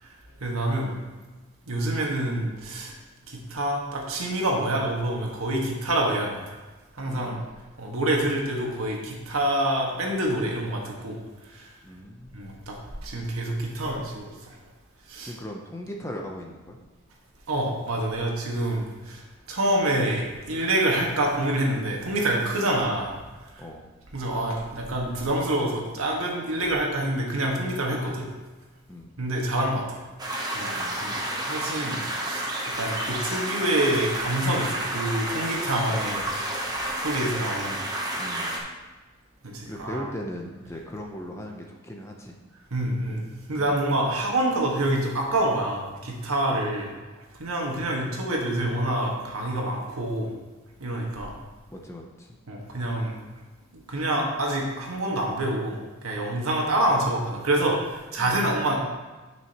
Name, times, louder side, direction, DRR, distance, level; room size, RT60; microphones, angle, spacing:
voice 1, 0.0-0.9 1.6-3.0 3.3-6.6 6.9-7.4 7.8-11.2 11.4-11.7 12.3-14.6 15.1-15.3 17.5-23.2 23.4-23.7 24.1-28.3 29.2-30.0 30.5-31.1 31.4-36.3 36.6-37.8 39.4-40.0 42.7-43.2 43.5-46.9 47.3-50.4 50.8-51.3 52.5-53.1 53.9-58.8, right 1 dB, 80° right, -1 dB, 1.6 m, -27 dB
voice 2, 7.0-7.5 11.8-12.5 15.2-16.8 22.6-22.7 23.6-23.9 28.9-29.1 30.7-31.5 38.2-38.7 39.7-42.3 43.6-43.7 51.7-52.3 58.2-58.3, equal, 10° left, 1 dB, 0.6 m, -39 dB
sound 1, 30.2-38.6, right 1 dB, 20° right, 0.9 m, -30 dB
9.5 x 6.2 x 3.0 m, 1.2 s
head